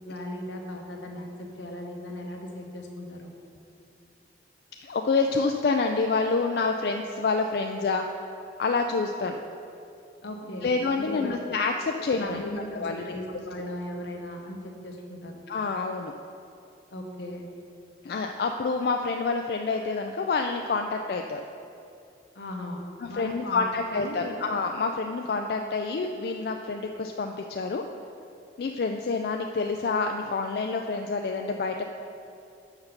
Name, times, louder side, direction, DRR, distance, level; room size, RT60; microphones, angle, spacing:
voice 1, 0.0-3.3 10.2-10.7 11.0-11.3 12.0-15.4 16.9-17.4 22.3-23.6 23.9-24.4, left 1 dB, 80° left, 2 dB, 1.0 m, -37 dB
voice 2, 4.8-8.1 8.6-9.4 10.6-13.1 15.5-16.1 18.0-21.4 23.0-27.8 28.6-31.8, left 4 dB, 55° left, 3 dB, 0.3 m, -28 dB
6.6 x 5.8 x 5.8 m, 2.6 s
head